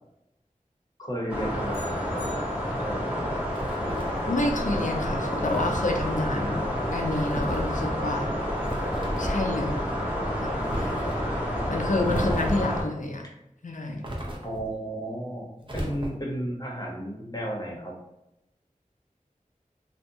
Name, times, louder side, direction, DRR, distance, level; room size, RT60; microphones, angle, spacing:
voice 1, 1.0-2.4 2.8-3.1 12.1-12.3 14.4-15.5 15.7-17.9, right 1 dB, 30° left, -1 dB, 0.8 m, -33 dB
sound 1, 1.3-12.8, equal, 10° right, 0.8 m, -29 dB
sound 2, 1.7-3.1, left 1 dB, 85° right, 1.1 m, -49 dB
sound 3, 3.5-4.3 5.4-5.9 7.1-7.7 8.6-9.4 10.6-11.2 12.1-12.8 14.0-14.7 15.6-16.4, equal, 35° right, 0.6 m, -34 dB
voice 2, 4.3-8.3 9.2-9.8 10.4-10.9 11.7-13.2 13.6-14.1, left 2 dB, 65° left, 2 dB, 0.5 m, -29 dB
2.6 x 2.1 x 2.6 m, 0.87 s
wide cardioid pair, 50°, 14 cm